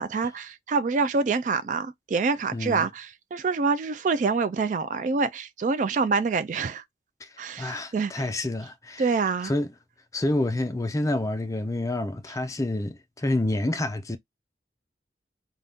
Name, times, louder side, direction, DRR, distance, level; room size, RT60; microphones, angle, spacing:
voice 1, 0.0-6.8 7.4-8.3 9.0-9.5, right 4 dB, 45° right, 0.3 m, -26 dB
voice 2, 2.5-2.9 7.2-7.3 7.6-9.1 9.4-9.7 10.1-14.2, left 1 dB, 20° left, 0.4 m, -28 dB
2.7 x 2.3 x 3.5 m
head